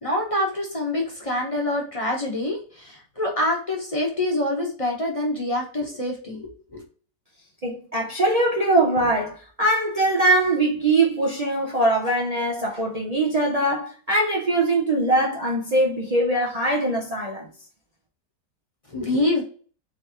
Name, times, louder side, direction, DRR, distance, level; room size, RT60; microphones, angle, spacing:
voice 1, 0.0-6.8 18.9-19.4, left 1 dB, 25° left, 0.8 m, -26 dB
voice 2, 7.6-17.5, right 2 dB, 85° right, 0.3 m, -22 dB
4.0 x 3.2 x 2.8 m
omnidirectional pair, 1.9 m